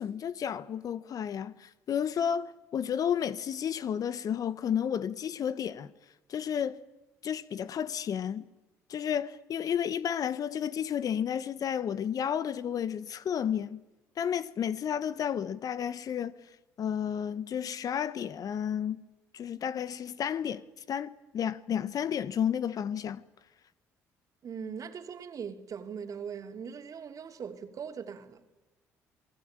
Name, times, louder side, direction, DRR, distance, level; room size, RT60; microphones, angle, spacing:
voice 1, 0.0-5.9 6.3-6.8 7.2-8.5 8.9-13.8 14.2-16.4 16.8-19.0 19.3-23.2, left 8 dB, 55° left, 1.2 m, -32 dB
voice 2, 24.4-28.4, right 6 dB, 50° right, 2.9 m, -40 dB
27.0 x 19.0 x 8.9 m
supercardioid pair, 65°, 7 cm